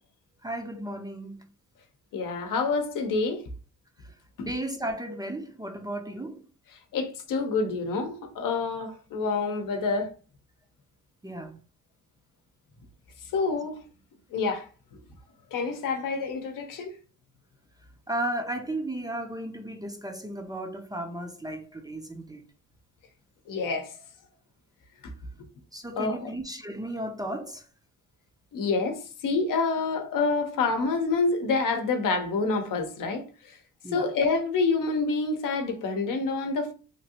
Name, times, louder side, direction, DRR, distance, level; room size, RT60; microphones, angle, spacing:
voice 1, 0.4-1.4 4.4-6.4 11.2-11.6 18.1-22.4 25.7-27.7 33.8-34.1, right 1 dB, 10° right, 0.5 m, -34 dB
voice 2, 2.1-3.4 4.4-4.5 6.9-10.1 13.3-13.8 14.3-14.7 15.5-16.9 23.5-23.9 25.9-26.3 28.5-33.2 33.9-36.7, left 4 dB, 75° left, 0.8 m, -27 dB
3.0 x 2.5 x 2.8 m
cardioid pair, 95°, 33 cm